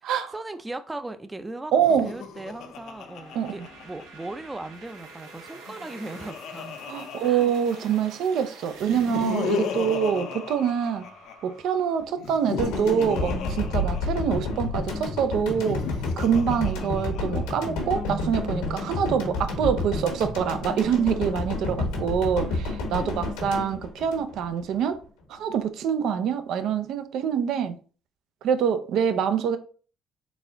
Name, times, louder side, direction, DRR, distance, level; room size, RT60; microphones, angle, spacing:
voice 1, 0.3-1.7 2.0-6.8 7.2-7.5 21.7-22.1, right 2 dB, 15° right, 0.5 m, -38 dB
Laughter, 1.7-4.5 5.6-8.2 8.8-11.5 12.2-14.6 15.5-17.6, left 7 dB, 70° left, 0.5 m, -35 dB
voice 2, 1.7-2.1 3.3-3.5 6.9-11.1 11.4-15.9 16.2-25.0 25.3-27.8 28.4-29.6, right 7 dB, 70° right, 0.4 m, -25 dB
sound 1, 2.3-12.1, right 3 dB, 90° right, 0.9 m, -48 dB
sound 2, 12.6-24.8, left 2 dB, 90° left, 1.1 m, -30 dB
4.0 x 2.3 x 3.8 m
supercardioid pair, 75°, 0 cm